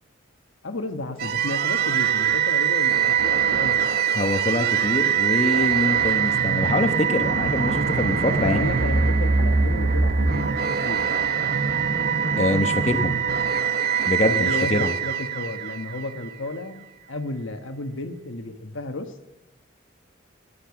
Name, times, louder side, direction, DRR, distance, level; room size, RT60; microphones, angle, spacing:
voice 1, 0.6-3.8 8.4-11.1 14.3-16.8 17.1-19.3, left 2 dB, 75° left, 7 dB, 1.3 m, -33 dB
sound 1, 1.2-16.3, right 6 dB, 50° right, 0.8 m, -23 dB
voice 2, 4.1-8.6 12.4-13.2 14.0-14.9, left 1 dB, 35° left, 8 dB, 0.9 m, -24 dB
16.5 x 11.5 x 7.0 m, 1.0 s
head